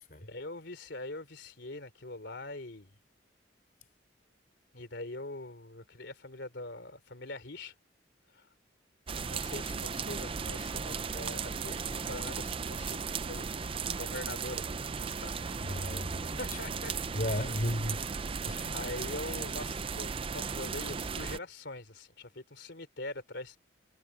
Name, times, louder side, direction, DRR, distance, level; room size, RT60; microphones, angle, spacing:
voice 1, 0.2-2.9 4.7-7.7 8.3-8.5 9.3-15.3 16.4-16.9 18.7-23.6, left 2 dB, 70° left, 3.2 m, -43 dB
sound 1, 9.1-21.4, right 5 dB, 30° right, 0.5 m, -36 dB
voice 2, 15.6-16.6 17.1-18.0 18.5-18.8, equal, 50° left, 3.7 m, -34 dB
head